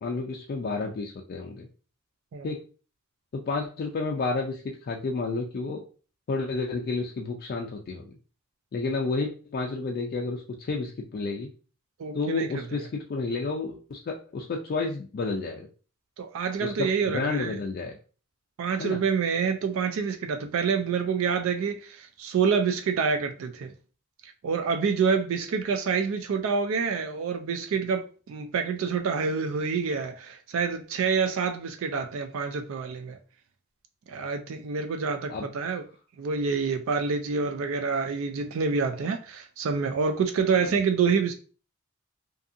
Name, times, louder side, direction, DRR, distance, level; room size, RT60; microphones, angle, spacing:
voice 1, 0.0-1.7 2.4-2.6 3.3-5.8 6.3-8.1 8.7-11.5 12.1-15.7 16.6-17.9 18.8-19.0 35.3-35.5 40.6-40.7, left 3 dB, 45° left, 0.3 m, -31 dB
voice 2, 12.0-12.6 16.2-17.6 18.6-23.7 24.2-33.2 34.1-35.8 36.2-41.3, right 5 dB, 70° right, 0.3 m, -27 dB
2.6 x 2.6 x 2.4 m
head